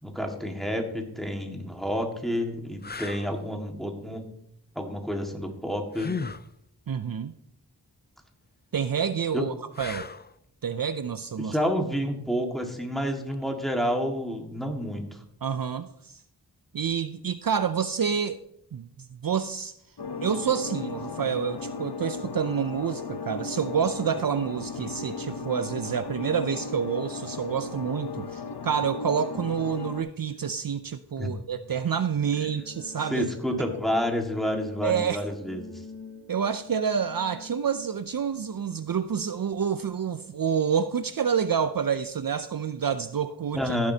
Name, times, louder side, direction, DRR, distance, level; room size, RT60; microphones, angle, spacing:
voice 1, 0.0-4.2 4.7-6.1 9.3-9.4 11.4-15.1 31.2-31.3 33.1-35.7 43.5-43.9, equal, ahead, 1.7 m, -29 dB
sound 1, 1.2-1.4 2.1-2.2 2.8-3.3 5.9-6.5 9.7-10.3 13.3-13.5, left 5 dB, 25° left, 0.4 m, -35 dB
voice 2, 6.9-7.3 8.7-10.1 10.6-11.6 15.4-16.2 16.7-18.4 18.7-19.7 20.2-33.3 34.8-35.2 36.3-43.9, right 7 dB, 60° right, 0.5 m, -28 dB
sound 2, 20.0-30.0, left 4 dB, 75° left, 0.8 m, -36 dB
sound 3, 31.6-40.2, left 2 dB, 45° left, 4.3 m, -47 dB
16.0 x 7.4 x 2.8 m
wide cardioid pair, 55°, 39 cm